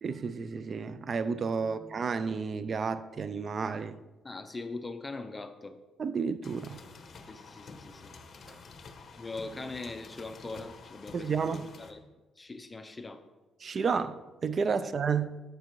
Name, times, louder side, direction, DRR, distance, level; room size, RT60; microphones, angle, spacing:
voice 1, 0.0-4.0 6.0-6.8 8.5-8.6 11.1-11.7 13.6-15.4, right 5 dB, 45° right, 0.4 m, -31 dB
voice 2, 1.6-2.0 4.2-5.8 7.3-8.1 9.2-12.0 12.4-13.2 14.8-14.9, left 3 dB, 20° left, 0.6 m, -41 dB
sound 1, 6.4-11.9, left 4 dB, 50° left, 0.8 m, -49 dB
9.3 x 6.7 x 3.1 m
cardioid pair, 90°, 0 cm